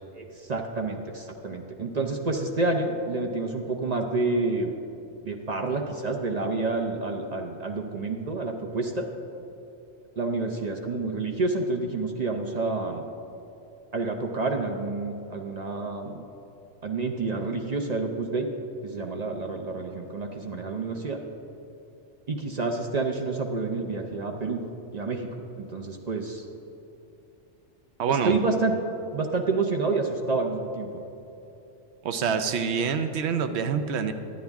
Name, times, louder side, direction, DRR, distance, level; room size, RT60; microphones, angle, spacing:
voice 1, 0.1-4.7 5.2-9.1 10.2-13.1 13.9-16.3 16.8-18.5 18.8-21.2 22.3-24.6 24.9-25.3 25.6-26.4 28.1-28.7 29.1-30.9, right 3 dB, 45° right, 2 dB, 0.6 m, -28 dB
voice 2, 28.0-28.4 32.0-34.1, right 6 dB, 70° right, 8 dB, 0.9 m, -26 dB
11.0 x 9.8 x 3.5 m, 2.9 s
omnidirectional pair, 1.2 m